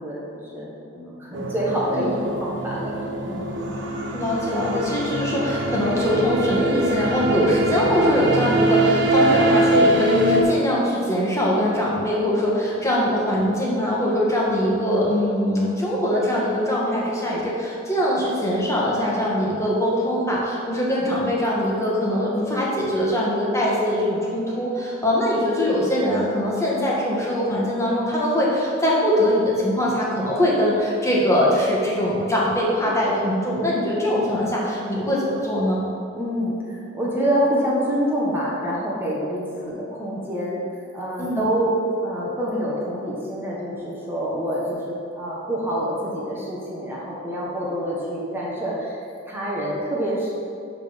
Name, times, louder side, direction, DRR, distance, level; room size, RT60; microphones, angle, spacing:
voice 1, 0.0-3.6 36.2-41.7 42.0-50.3, equal, 10° right, -6 dB, 1.4 m, -27 dB
sound 1, 1.3-10.4, right 1 dB, 65° right, 1.1 m, -23 dB
voice 2, 4.1-35.8 41.2-41.5, equal, 15° left, -5 dB, 1.7 m, -22 dB
11.5 x 4.0 x 5.3 m, 2.6 s
head